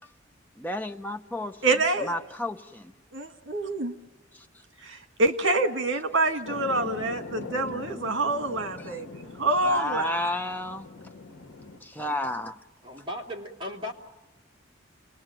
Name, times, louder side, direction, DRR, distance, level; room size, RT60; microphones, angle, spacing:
voice 1, 0.6-2.9 4.3-4.5 8.8-9.0 9.6-10.9 11.8-12.6, left 1 dB, 10° left, 0.8 m, -32 dB
voice 2, 1.6-2.1 3.1-3.9 4.8-9.1 9.4-10.3, right 2 dB, 65° right, 1.8 m, -26 dB
sound 1, 6.5-11.8, left 3 dB, 75° left, 2.1 m, -41 dB
voice 3, 12.8-13.9, left 1 dB, 25° right, 3.0 m, -36 dB
28.5 x 20.5 x 9.1 m
head